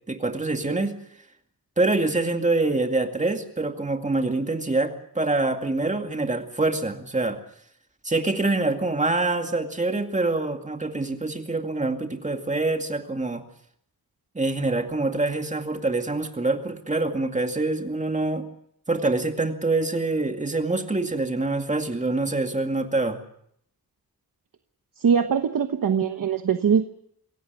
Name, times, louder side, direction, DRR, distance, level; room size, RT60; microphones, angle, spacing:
voice 1, 0.1-1.0 1.8-7.4 8.0-13.4 14.3-18.4 18.9-23.2, right 2 dB, 20° right, 5 dB, 2.3 m, -25 dB
voice 2, 25.0-26.8, right 7 dB, 60° right, 8 dB, 1.2 m, -22 dB
26.0 x 17.0 x 8.1 m, 0.71 s
wide cardioid pair, 175°, 38 cm